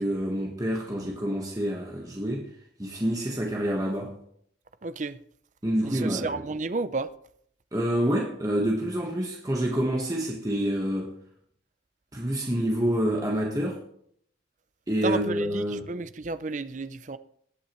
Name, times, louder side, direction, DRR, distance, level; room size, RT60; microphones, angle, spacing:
voice 1, 0.0-2.5 2.8-4.1 5.6-6.4 7.7-11.1 12.1-13.8 14.9-15.9, equal, 20° right, 1.3 m, -27 dB
voice 2, 4.8-5.2 5.8-7.1 15.0-17.2, right 3 dB, 40° right, 0.5 m, -32 dB
18.5 x 8.5 x 3.1 m
head